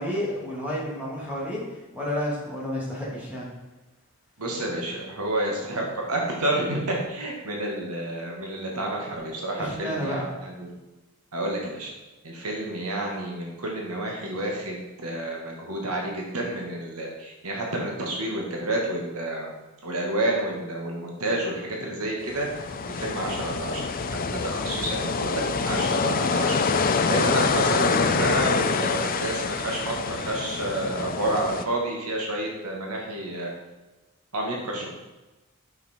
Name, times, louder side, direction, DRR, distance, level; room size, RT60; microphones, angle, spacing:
voice 1, 0.0-3.5 9.6-10.3, equal, 5° right, -6 dB, 2.4 m, -31 dB
voice 2, 4.4-10.7 11.3-11.9 12.2-19.5 19.8-22.5 22.9-33.5 34.3-34.9, right 1 dB, 85° right, -1 dB, 1.8 m, -30 dB
sound 1, 22.2-31.6, left 4 dB, 40° left, 0.6 m, -26 dB
8.6 x 7.0 x 4.4 m, 1.1 s
head